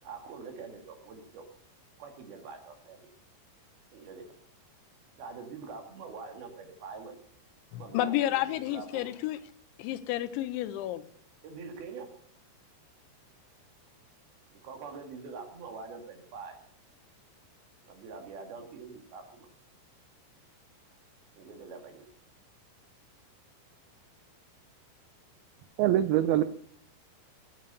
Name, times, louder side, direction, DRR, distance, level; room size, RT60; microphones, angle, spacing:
voice 1, 0.0-1.5 2.0-3.0 3.9-4.3 5.2-7.2 7.8-8.3 8.7-9.1 11.4-12.1 14.6-16.6 17.8-19.5 21.4-22.1, right 4 dB, 60° right, 4 dB, 3.8 m, -44 dB
voice 2, 7.7-9.4 9.8-11.1, left 14 dB, 85° left, 13 dB, 3.1 m, -31 dB
voice 3, 25.8-26.4, right 12 dB, 85° right, 11 dB, 2.2 m, -23 dB
19.0 x 9.1 x 6.8 m, 0.62 s
omnidirectional pair, 5.2 m